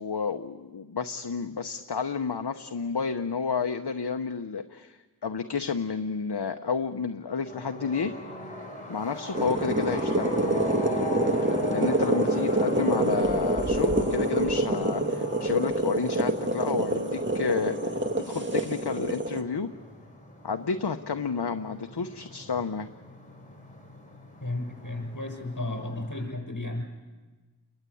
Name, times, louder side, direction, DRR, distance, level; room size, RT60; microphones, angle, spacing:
voice 1, 0.0-8.2 8.9-10.7 11.7-19.7 20.4-22.9, left 5 dB, 70° left, 7 dB, 1.0 m, -31 dB
sound 1, 7.4-26.2, left 1 dB, 20° left, 6.7 m, -39 dB
sound 2, 9.3-19.4, right 1 dB, 25° right, 2.0 m, -27 dB
voice 2, 24.4-26.8, left 2 dB, 45° left, 3 dB, 7.3 m, -33 dB
30.0 x 22.0 x 8.5 m, 1.3 s
wide cardioid pair, 55°, 41 cm